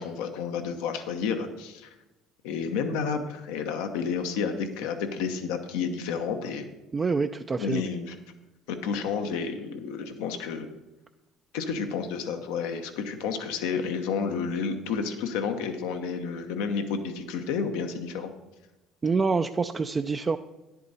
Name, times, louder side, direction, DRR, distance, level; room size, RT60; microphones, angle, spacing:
voice 1, 0.0-1.9 2.4-6.7 7.6-8.1 8.7-10.7 11.5-18.3, left 6 dB, 85° left, 6 dB, 0.9 m, -31 dB
voice 2, 6.9-7.8 19.0-20.4, right 4 dB, 30° right, 6 dB, 0.4 m, -26 dB
10.5 x 8.3 x 4.1 m, 1.0 s
supercardioid pair, 75°, 0 cm